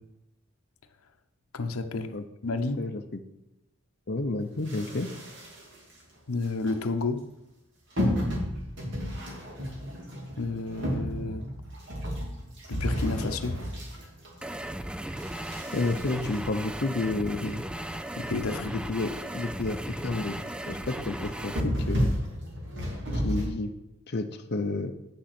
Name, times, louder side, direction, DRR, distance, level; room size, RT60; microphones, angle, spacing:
voice 1, 1.5-2.9 6.3-7.3 10.4-11.5 12.7-13.7 18.2-18.7, left 3 dB, 90° left, 0.7 m, -31 dB
voice 2, 2.8-3.2 4.1-5.1 15.7-17.6 18.6-20.4 20.7-22.1 23.1-23.7 24.1-24.9, left 2 dB, 50° left, 0.6 m, -31 dB
sound 1, 4.7-5.9 6.4-6.7 8.0-14.7 15.2-17.3 17.8-17.9 18.1-18.2 18.6-18.7 19.0-19.2 19.5-19.9 20.3-20.5 21.2-23.4, equal, 55° right, 2.4 m, -32 dB
sound 2, 14.4-21.6, right 1 dB, 5° right, 0.3 m, -36 dB
8.6 x 6.5 x 6.0 m
head